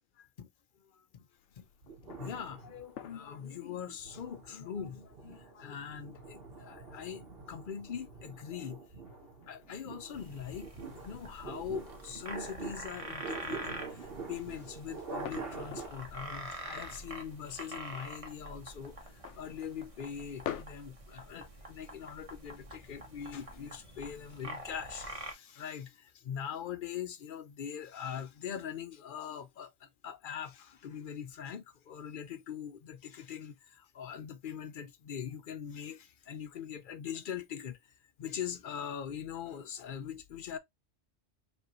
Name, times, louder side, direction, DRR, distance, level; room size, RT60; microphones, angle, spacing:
voice 1, 0.2-0.5 0.7-1.3 1.5-1.7 2.0-8.8 9.5-37.8 38.2-40.6, left 8 dB, 55° left, 0.7 m, -42 dB
sound 1, 1.3-20.6, left 10 dB, 85° left, 0.9 m, -51 dB
sound 2, 1.8-3.3 3.8-15.9, right 4 dB, 55° right, 1.2 m, -46 dB
sound 3, 10.1-25.3, right 1 dB, 30° right, 0.9 m, -46 dB
5.3 x 2.5 x 2.9 m
omnidirectional pair, 1.2 m